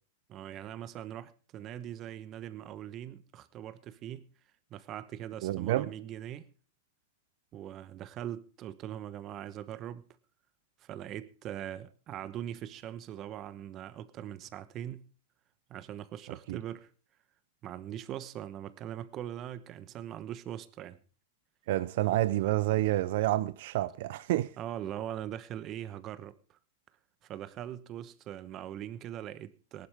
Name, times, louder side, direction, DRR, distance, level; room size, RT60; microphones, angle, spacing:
voice 1, 0.3-4.3 4.7-6.5 7.5-10.0 10.8-15.1 15.7-16.9 17.6-21.0 24.6-26.4 27.2-29.9, right 11 dB, 35° right, 1.1 m, -41 dB
voice 2, 5.4-5.9 16.3-16.6 21.7-24.6, right 16 dB, 65° right, 0.5 m, -29 dB
18.0 x 12.0 x 3.6 m
hypercardioid pair, 130°, 0 cm